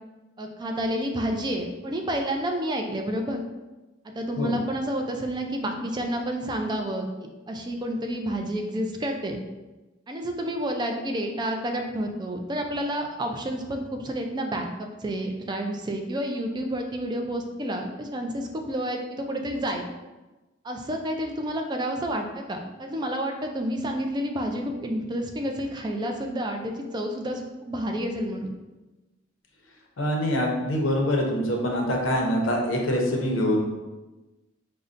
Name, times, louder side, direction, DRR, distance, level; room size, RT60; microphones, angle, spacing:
voice 1, 0.4-3.4 4.0-7.1 7.5-9.4 10.1-19.9 20.6-28.6, equal, 20° right, 3 dB, 0.4 m, -30 dB
voice 2, 30.0-33.6, equal, 85° left, 1 dB, 0.7 m, -24 dB
5.2 x 2.1 x 2.5 m, 1.1 s
head